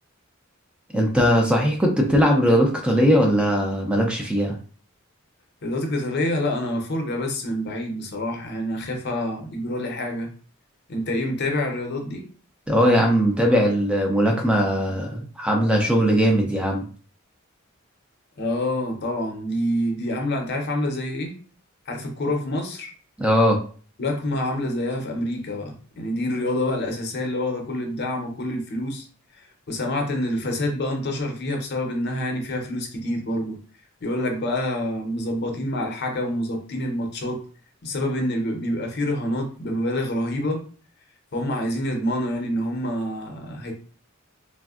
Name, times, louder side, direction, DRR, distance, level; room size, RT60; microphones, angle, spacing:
voice 1, 0.9-4.6 12.7-16.9 23.2-23.6, equal, 5° right, 1 dB, 0.4 m, -19 dB
voice 2, 5.6-10.3 10.9-12.3 18.4-21.4 21.9-22.9 24.0-29.1 29.3-33.6 34.0-37.4 37.8-40.6 41.3-43.7, left 1 dB, 50° left, 3 dB, 0.6 m, -27 dB
3.4 x 2.1 x 2.3 m, 0.41 s
head